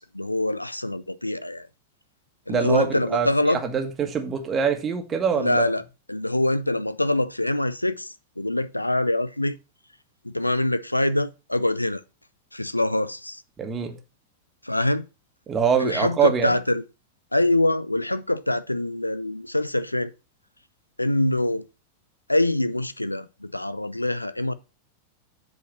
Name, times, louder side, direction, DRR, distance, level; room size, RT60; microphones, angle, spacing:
voice 1, 0.0-1.7 2.5-3.6 5.3-9.6 10.2-12.0 12.5-13.4 14.6-15.1 15.8-16.8 17.3-20.1 21.0-21.6 22.3-24.5, left 1 dB, 85° left, 0.5 m, -24 dB
voice 2, 2.5-5.7 13.6-14.0 15.5-16.5, right 6 dB, 25° right, 1.6 m, -24 dB
8.1 x 4.8 x 6.0 m
figure-of-eight pair, 90°, 0 cm